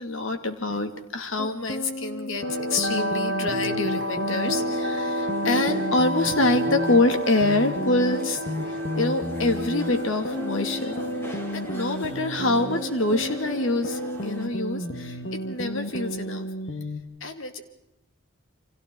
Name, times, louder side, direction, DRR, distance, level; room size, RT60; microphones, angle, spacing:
voice 1, 0.0-11.0 11.3-16.5 17.2-17.6, left 2 dB, 80° left, 7 dB, 2.1 m, -26 dB
sound 1, 1.4-17.0, equal, 55° left, 1.5 m, -33 dB
sound 2, 2.3-16.4, equal, 60° right, 1.6 m, -32 dB
sound 3, 4.3-14.5, equal, 10° left, 2.1 m, -44 dB
30.0 x 25.0 x 3.8 m, 0.87 s
head